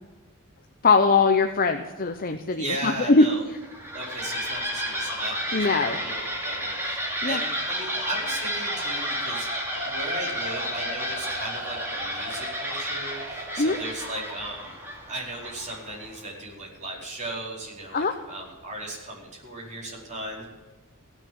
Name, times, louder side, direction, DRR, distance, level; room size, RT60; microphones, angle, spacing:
voice 1, 0.8-3.3 5.5-6.0 7.2-7.4 13.6-13.8 17.9-18.2, left 4 dB, 40° left, 6 dB, 0.8 m, -21 dB
voice 2, 2.5-3.4 3.9-14.7 15.1-20.4, right 1 dB, 35° right, -4 dB, 4.7 m, -36 dB
sound 1, 3.5-16.1, equal, 10° right, 2.9 m, -31 dB
17.5 x 6.9 x 8.6 m, 1.3 s
head